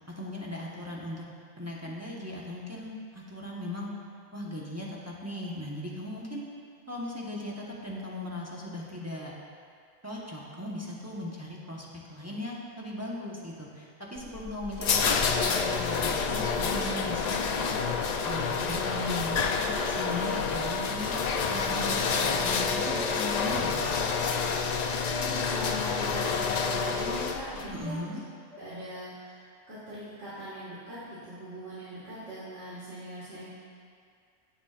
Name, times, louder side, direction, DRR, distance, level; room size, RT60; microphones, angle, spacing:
voice 1, 0.2-1.3 1.6-3.9 4.3-6.4 6.9-9.3 10.0-17.4 18.3-21.1 21.5-23.8 27.7-28.2, left 1 dB, 15° right, -5 dB, 1.0 m, -38 dB
sound 1, 14.2-27.7, left 5 dB, 60° left, 0.4 m, -28 dB
voice 2, 24.9-28.0 28.5-33.5, equal, 70° right, -11 dB, 2.2 m, -41 dB
16.0 x 7.2 x 2.5 m, 2.2 s
omnidirectional pair, 1.3 m